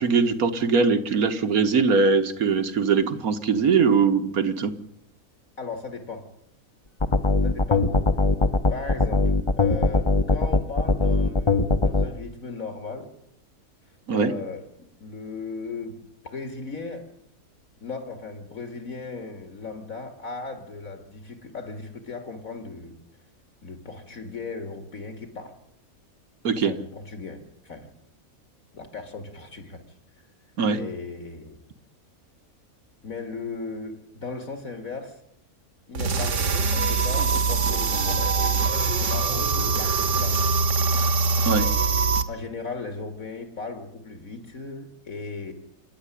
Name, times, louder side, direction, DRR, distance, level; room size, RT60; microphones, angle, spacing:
voice 1, 0.0-4.7 14.1-14.3 26.4-26.7 30.6-30.8 41.4-41.7, right 5 dB, 75° right, 9 dB, 1.9 m, -21 dB
voice 2, 5.6-6.3 7.4-8.2 8.7-13.1 14.1-16.0 16.2-17.1 17.8-23.0 23.6-25.5 26.6-27.9 28.7-29.8 30.7-31.6 33.0-35.2 35.9-40.5 42.3-45.5, left 4 dB, 65° left, 6 dB, 2.8 m, -37 dB
sound 1, 7.0-12.1, left 3 dB, 25° left, 0.9 m, -20 dB
sound 2, 35.9-42.2, right 4 dB, 55° right, 1.5 m, -23 dB
27.0 x 10.5 x 10.0 m, 0.75 s
omnidirectional pair, 1.5 m